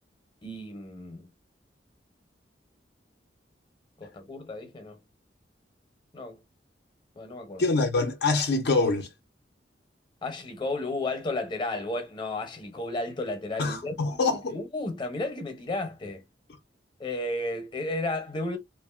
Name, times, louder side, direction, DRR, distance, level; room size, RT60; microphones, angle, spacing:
voice 1, 0.4-1.3 4.0-5.0 6.1-6.4 7.1-7.6 10.2-14.2 14.5-16.2 17.0-18.6, left 2 dB, 25° left, 0.7 m, -33 dB
voice 2, 7.6-9.1 13.6-14.6, left 3 dB, 60° left, 0.4 m, -25 dB
2.8 x 2.5 x 2.3 m
head